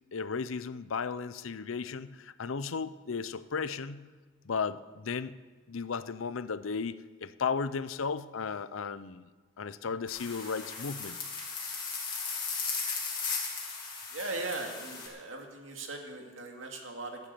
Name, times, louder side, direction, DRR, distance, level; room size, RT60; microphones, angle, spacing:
voice 1, 0.1-4.1 4.4-5.4 5.7-9.3 9.6-11.2, left 5 dB, 85° left, 15 dB, 0.6 m, -35 dB
sound 1, 10.1-15.1, left 5 dB, 25° left, 3.0 m, -36 dB
voice 2, 14.1-17.2, right 2 dB, 80° right, 2 dB, 2.3 m, -39 dB
15.0 x 10.5 x 6.9 m, 1.4 s
head